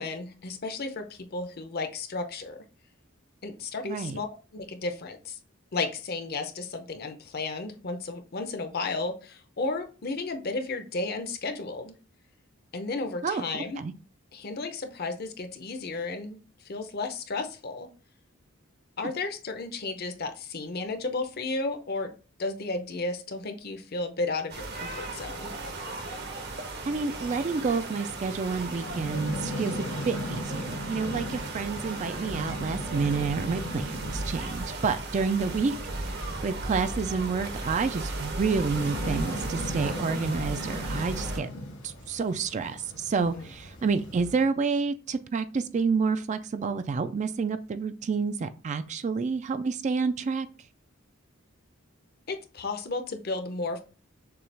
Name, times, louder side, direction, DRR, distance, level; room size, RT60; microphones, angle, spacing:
voice 1, 0.0-2.6 3.4-5.4 5.7-11.9 12.7-13.8 14.3-17.9 19.0-25.5 43.2-43.4 52.3-53.8, left 3 dB, 50° left, 6 dB, 0.7 m, -33 dB
voice 2, 3.8-4.2 13.2-13.4 13.8-13.9 26.8-29.7 30.1-35.8 36.4-41.5 41.8-50.5, right 4 dB, 35° right, 10 dB, 0.3 m, -29 dB
sound 1, 24.5-41.4, right 2 dB, 55° right, 0.8 m, -36 dB
sound 2, 28.1-44.4, equal, 80° left, 2.2 m, -39 dB
6.8 x 2.3 x 3.3 m, 0.36 s
head